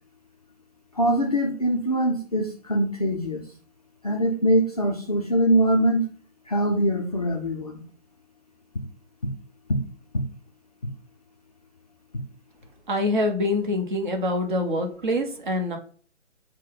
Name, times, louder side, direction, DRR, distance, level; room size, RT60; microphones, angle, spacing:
voice 1, 0.9-3.5 4.0-6.0 6.5-7.8 9.7-9.8 10.1-10.2, equal, 30° left, 1 dB, 0.5 m, -23 dB
voice 2, 12.9-15.8, left 1 dB, 40° right, 3 dB, 1.0 m, -25 dB
6.0 x 2.2 x 3.9 m, 0.43 s
figure-of-eight pair, 145°, 38 cm